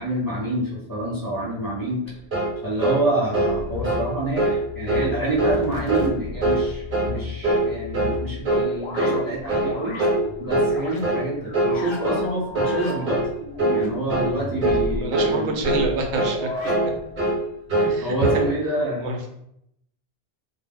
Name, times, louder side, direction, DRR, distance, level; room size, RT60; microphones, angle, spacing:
voice 1, 0.0-2.0 2.6-10.0 10.4-13.2 13.7-15.6 17.8-19.0, right 1 dB, 25° right, -6 dB, 0.6 m, -27 dB
sound 1, 2.3-2.5 2.8-3.0 3.3-3.6 3.8-4.1 4.4-4.6 4.9-5.1 5.4-5.6 5.9-6.1 6.4-6.6 6.9-7.1 7.4-7.7 7.9-8.2 8.4-8.7 9.0-9.2 9.5-9.7 10.0-10.2 10.5-10.7 11.0-11.2 11.5-11.8 12.0-12.3 12.5-12.8 13.1-13.3 13.6-13.8 14.1-14.3 14.6-14.8 15.1-15.3 15.6-15.9 16.1-16.4 16.6-16.9 17.2-17.4 17.7-18.4, right 2 dB, 50° right, 0.9 m, -22 dB
sound 2, 3.3-11.0 11.4-17.2, left 2 dB, 55° left, 0.3 m, -34 dB
voice 2, 14.9-16.5 17.9-18.5 19.0-19.3, right 2 dB, 85° right, 2 dB, 0.9 m, -27 dB
2.2 x 2.0 x 3.4 m, 0.76 s
omnidirectional pair, 1.1 m